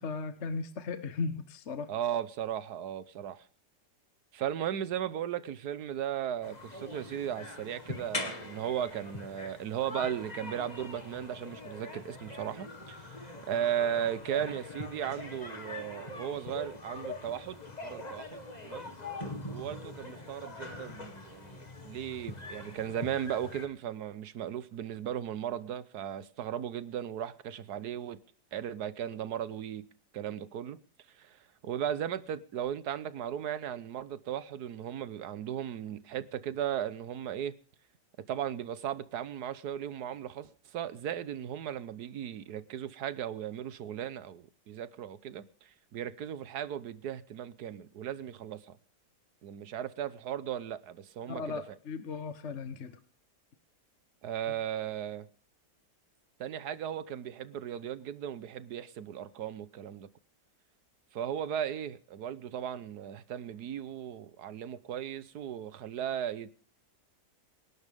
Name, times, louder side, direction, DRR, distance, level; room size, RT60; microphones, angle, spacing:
voice 1, 0.0-1.9 51.3-52.9, left 4 dB, 45° left, 1.4 m, -36 dB
voice 2, 1.9-3.5 4.3-18.9 19.5-28.2 28.5-29.9 30.1-30.8 31.2-37.6 38.3-48.8 49.4-51.6 54.2-55.3 56.4-60.1 61.1-66.5, right 10 dB, 65° right, 1.4 m, -36 dB
sound 1, 6.4-23.7, left 2 dB, 25° left, 1.9 m, -43 dB
26.5 x 11.5 x 3.6 m
omnidirectional pair, 1.9 m